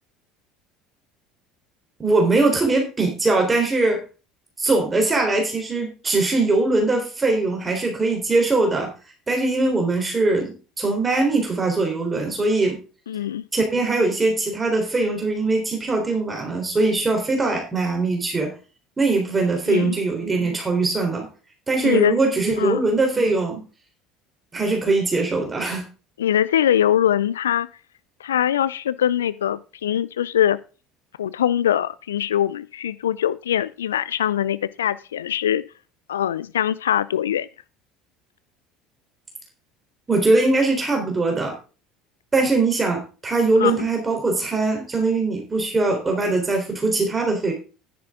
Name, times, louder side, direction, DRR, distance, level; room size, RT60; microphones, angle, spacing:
voice 1, 2.0-4.0 4.6-8.9 9.3-12.8 13.5-18.5 19.0-21.3 21.7-23.6 24.5-25.8 40.1-41.5 42.3-47.5, right 3 dB, 20° right, 2 dB, 3.7 m, -21 dB
voice 2, 13.1-13.4 19.7-19.9 21.8-22.2 22.6-22.8 26.2-27.7 28.2-30.6 31.2-35.6 36.1-37.5 43.6-43.9, left 10 dB, 80° left, 18 dB, 0.4 m, -22 dB
10.5 x 10.0 x 3.7 m, 0.34 s
hypercardioid pair, 65°, 0 cm